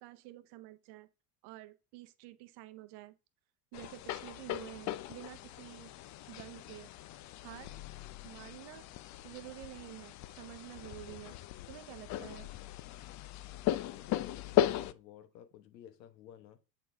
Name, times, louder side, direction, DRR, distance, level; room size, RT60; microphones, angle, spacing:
voice 1, 0.0-1.1 1.4-3.1 3.7-5.9 6.3-6.9 7.4-7.8 8.2-8.9 9.2-11.4 11.7-12.5, right 17 dB, 55° right, 0.9 m, -49 dB
sound 1, 3.7-14.9, left 13 dB, 40° left, 0.4 m, -37 dB
voice 2, 13.5-16.6, left 10 dB, 90° left, 1.2 m, -54 dB
7.4 x 4.4 x 3.4 m
supercardioid pair, 100°, 48 cm